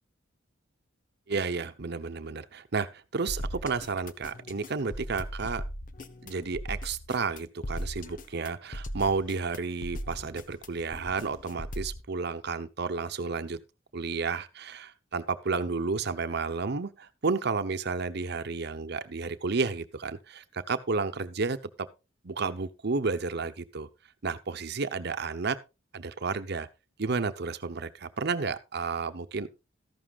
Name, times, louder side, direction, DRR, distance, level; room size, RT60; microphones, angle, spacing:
voice 1, 1.3-5.6 6.2-13.6 13.9-21.6 22.2-23.9 24.2-25.6 25.9-26.7 27.0-29.5, right 4 dB, 55° right, 0.9 m, -31 dB
sound 1, 3.3-12.0, equal, 45° left, 0.9 m, -38 dB
14.0 x 11.5 x 2.4 m
head